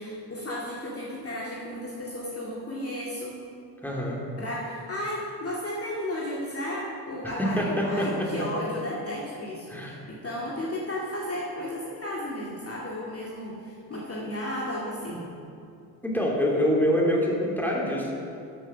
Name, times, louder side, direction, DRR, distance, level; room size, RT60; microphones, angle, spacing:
voice 1, 0.0-3.4 4.4-15.3, left 1 dB, 30° left, -5 dB, 2.2 m, -34 dB
voice 2, 3.8-4.2 7.2-8.3 9.7-10.0 16.0-18.1, equal, 5° left, -3 dB, 3.2 m, -25 dB
13.5 x 6.4 x 6.2 m, 2.5 s
hypercardioid pair, 55°, 49 cm